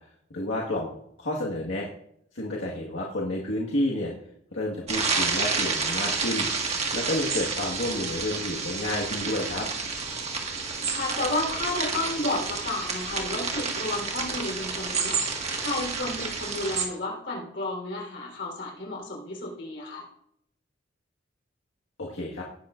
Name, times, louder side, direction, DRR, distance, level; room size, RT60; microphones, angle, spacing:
voice 1, 0.3-1.9 2.3-4.1 4.5-6.5 6.9-9.7 22.0-22.4, left 1 dB, 75° left, -4 dB, 1.7 m, -30 dB
sound 1, 4.9-16.9, right 4 dB, 35° right, 1.8 m, -30 dB
voice 2, 10.9-20.1, left 2 dB, 60° left, -2 dB, 3.9 m, -32 dB
18.0 x 10.5 x 2.6 m, 0.74 s
head